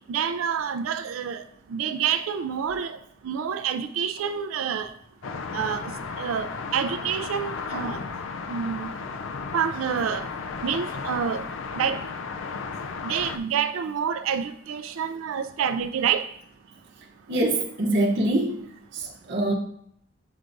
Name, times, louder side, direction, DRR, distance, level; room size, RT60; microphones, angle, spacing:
voice 1, 0.1-1.4 1.7-4.9 5.5-5.9 6.2-8.0 8.5-8.9 9.5-10.3 10.6-11.4 11.7-12.0 13.0-16.3, right 7 dB, 90° right, 9 dB, 0.4 m, -28 dB
sound 1, 5.2-13.4, left 4 dB, 75° left, 0.4 m, -34 dB
voice 2, 17.3-18.6 18.9-19.5, right 1 dB, 60° right, -2 dB, 0.9 m, -24 dB
8.0 x 4.6 x 2.6 m, 0.69 s
head